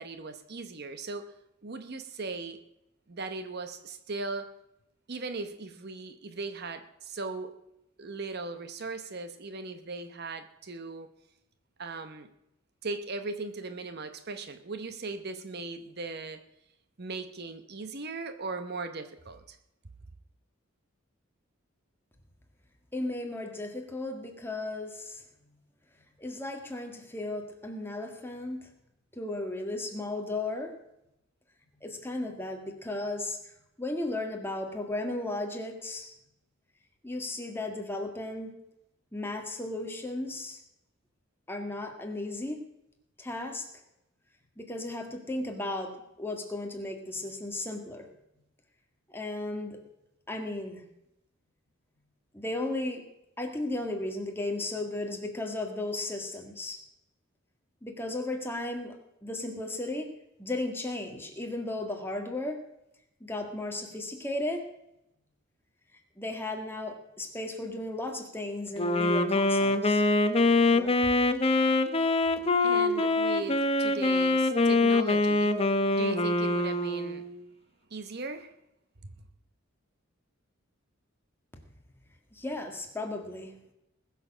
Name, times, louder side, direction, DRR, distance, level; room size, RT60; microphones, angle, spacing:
voice 1, 0.0-1.3 1.6-2.6 3.1-4.5 5.1-7.5 8.0-11.1 11.8-12.3 12.8-16.4 17.0-19.6 72.6-75.6 75.9-77.3 77.9-78.5, right 3 dB, 50° right, 9 dB, 0.9 m, -38 dB
voice 2, 22.9-25.2 26.2-28.7 29.1-30.7 31.8-33.4 33.8-36.1 37.0-38.5 39.1-40.6 41.5-42.6 43.2-43.7 44.6-48.1 49.1-49.8 50.3-50.8 52.3-53.0 53.4-56.8 57.8-60.1 60.4-62.6 63.2-64.7 66.2-70.0 70.7-71.0 82.3-83.5, left 2 dB, 10° left, 2 dB, 1.8 m, -35 dB
Wind instrument woodwind instrument, 68.8-77.4, left 2 dB, 30° left, 0.8 m, -24 dB
20.5 x 6.9 x 6.1 m, 0.84 s
head